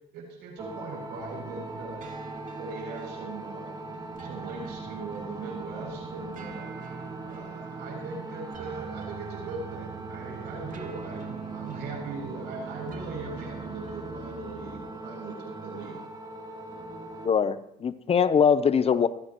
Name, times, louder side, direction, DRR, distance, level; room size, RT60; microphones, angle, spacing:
voice 1, 0.1-2.1 2.6-3.7 4.2-6.7 7.2-16.0, right 4 dB, 85° right, 0 dB, 7.4 m, -40 dB
sound 1, 0.6-17.3, right 3 dB, 25° right, 3.4 m, -40 dB
sound 2, 1.2-14.8, right 4 dB, 50° right, 1.9 m, -47 dB
voice 2, 17.2-19.1, left 7 dB, 35° left, 13 dB, 0.8 m, -22 dB
22.0 x 15.0 x 3.1 m, 0.76 s
cardioid pair, 110°, 17 cm